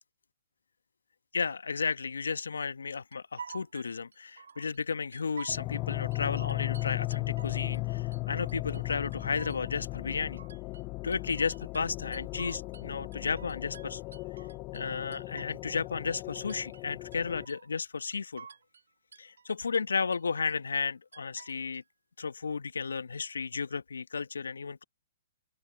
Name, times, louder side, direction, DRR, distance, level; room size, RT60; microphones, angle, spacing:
voice 1, 1.3-10.4 11.0-14.0 14.7-18.5 19.2-21.8 22.2-24.8, left 5 dB, 80° left, 1.4 m, -33 dB
sound 1, 3.1-4.8 5.1-5.8 6.1-7.8 8.1-8.9 9.1-12.9 13.1-15.9 16.1-16.9 17.1-17.9 18.1-18.9 19.1-19.8 20.1-20.9 21.1-21.8, right 6 dB, 75° right, 3.6 m, -50 dB
sound 2, 5.5-17.5, left 24 dB, 35° left, 0.6 m, -36 dB
open air
figure-of-eight pair, 120°, 0 cm